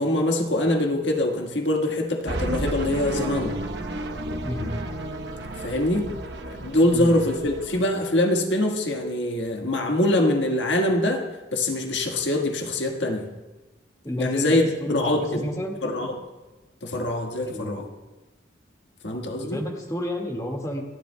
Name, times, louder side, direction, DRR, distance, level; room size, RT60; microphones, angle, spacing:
voice 1, 0.0-3.6 5.6-6.1 6.5-11.2 11.5-13.3 14.2-14.6 14.9-15.5 15.8-16.1 16.8-17.8 19.0-19.6, left 1 dB, 80° left, 2 dB, 1.6 m, -24 dB
sound 1, 2.3-7.8, right 1 dB, 65° right, 0.9 m, -32 dB
voice 2, 4.4-4.7 6.9-7.2 14.0-15.8 17.4-17.8 19.4-20.8, left 1 dB, 20° left, 0 dB, 1.9 m, -31 dB
29.0 x 11.0 x 2.3 m, 1.1 s
head